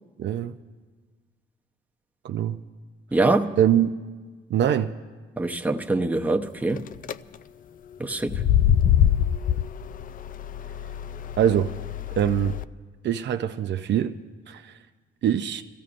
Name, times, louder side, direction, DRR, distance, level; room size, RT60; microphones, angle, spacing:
voice 1, 0.2-0.6 2.2-2.6 3.6-3.9 4.5-4.9 11.4-11.7 12.2-12.6 13.0-14.2 14.5-14.7 15.2-15.6, right 10 dB, 65° right, 0.6 m, -23 dB
voice 2, 3.1-3.5 5.4-6.9 8.0-8.4, right 2 dB, 10° right, 0.8 m, -24 dB
sound 1, 6.8-7.1 8.2-12.6, left 10 dB, 45° left, 0.4 m, -24 dB
27.5 x 15.5 x 2.6 m
cardioid pair, 90°, 20 cm